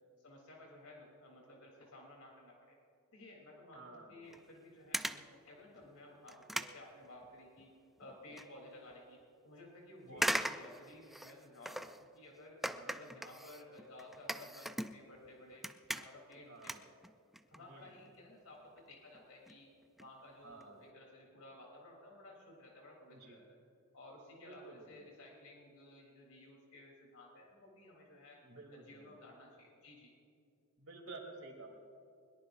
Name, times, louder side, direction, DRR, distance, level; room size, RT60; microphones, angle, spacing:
voice 1, 0.2-2.7 3.1-7.7 8.0-9.2 9.4-12.6 12.8-15.6 15.9-16.8 17.5-19.7 20.0-23.6 23.9-28.4 28.7-30.1, left 1 dB, 75° left, -1 dB, 3.4 m, -55 dB
voice 2, 3.7-4.2 10.0-10.4 12.7-13.0 16.5-16.8 17.5-17.9 20.4-20.8 23.1-23.4 24.3-25.0 28.4-29.1 30.8-31.7, right 3 dB, 70° right, 1 dB, 3.2 m, -52 dB
sound 1, 4.3-4.5 4.9-5.3 5.8-5.9 6.3-7.6 8.0-8.5 8.9-9.0 10.2-12.1 12.6-15.3 15.5-16.3 16.6-17.6 17.9-18.1 18.8-18.9 19.1-19.2 19.5-19.6 19.8-20.1 20.5-20.6 20.9-21.0, equal, ahead, 0.4 m, -40 dB
21.5 x 21.5 x 2.6 m, 2.5 s
head